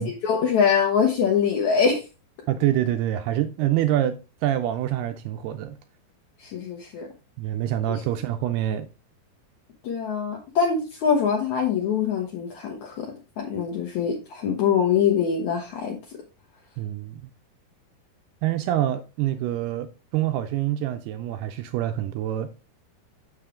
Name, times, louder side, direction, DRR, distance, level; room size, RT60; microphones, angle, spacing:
voice 1, 0.0-2.1 6.4-7.1 9.8-13.1 13.4-16.0, left 7 dB, 90° left, 1.6 m, -23 dB
voice 2, 2.5-4.2 4.4-5.8 7.4-8.9 16.8-17.3 18.4-22.5, right 12 dB, 85° right, 2.3 m, -26 dB
6.8 x 6.3 x 3.6 m
omnidirectional pair, 5.0 m